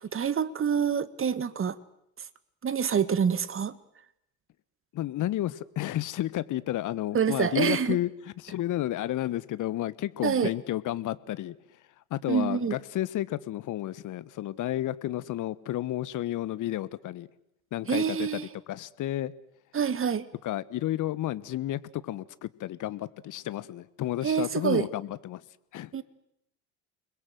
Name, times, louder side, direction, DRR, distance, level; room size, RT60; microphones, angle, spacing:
voice 1, 0.1-1.8 2.6-3.8 7.1-8.0 10.2-10.5 12.3-12.8 17.9-18.5 19.7-20.3 24.2-24.9 25.9-26.0, right 7 dB, 30° right, 15 dB, 1.8 m, -26 dB
voice 2, 4.9-11.5 12.1-17.3 17.7-18.4 18.7-19.3 20.4-25.4 25.7-25.9, left 14 dB, 45° left, 17 dB, 1.4 m, -31 dB
29.5 x 21.5 x 7.8 m, 0.77 s
hypercardioid pair, 65°, 44 cm